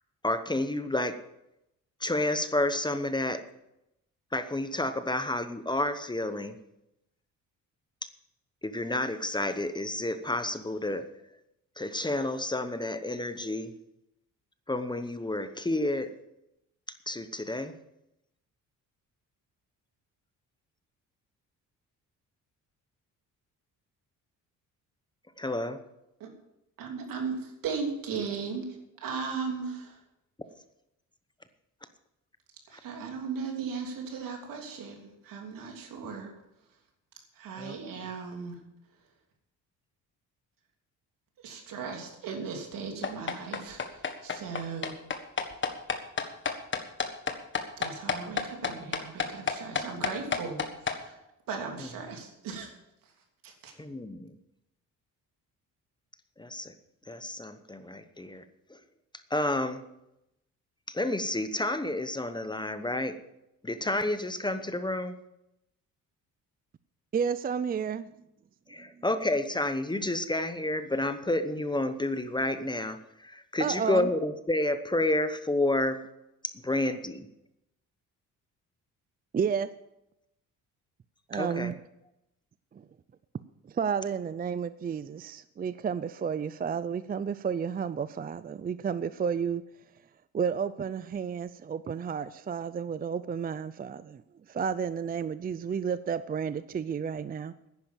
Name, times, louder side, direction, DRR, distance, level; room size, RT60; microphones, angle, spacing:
voice 1, 0.2-1.2 2.0-3.4 4.3-6.5 8.6-11.0 11.8-13.7 14.7-16.1 17.1-17.7 25.4-25.8 37.6-37.8 51.8-51.9 53.8-54.3 56.4-56.7 57.1-58.4 58.7-58.8 59.3-59.8 60.9-63.1 63.6-65.1 68.7-76.0 76.4-77.3 81.3-81.8, left 1 dB, 15° left, 10 dB, 1.0 m, -30 dB
voice 2, 26.8-30.0 32.7-36.3 37.3-38.6 41.4-44.9 47.8-51.2 51.5-52.7 53.4-53.7, right 5 dB, 80° right, 2 dB, 3.2 m, -37 dB
sound 1, 43.0-51.0, left 5 dB, 35° left, 1.5 m, -30 dB
voice 3, 67.1-68.1 73.6-74.1 79.3-79.7 81.3-81.7 82.7-82.8 83.7-89.6 90.3-94.2 94.5-97.5, right 7 dB, 30° right, 14 dB, 0.5 m, -31 dB
10.5 x 10.0 x 7.3 m, 0.87 s
cardioid pair, 100°, 33 cm